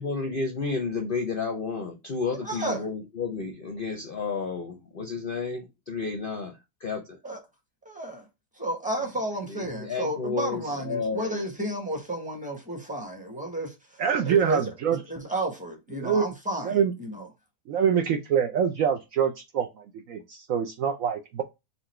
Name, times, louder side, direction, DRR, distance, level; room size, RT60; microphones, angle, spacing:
voice 1, 0.0-7.2 9.5-11.5, left 4 dB, 55° left, 0.6 m, -31 dB
voice 2, 2.3-2.8 7.2-7.4 7.8-8.3 8.6-13.7 14.2-14.6 14.9-17.3, right 1 dB, 5° right, 1.1 m, -32 dB
voice 3, 14.0-15.0 16.0-16.3 16.6-16.9 17.7-21.4, right 7 dB, 70° right, 0.9 m, -25 dB
4.3 x 2.6 x 4.2 m
omnidirectional pair, 1.7 m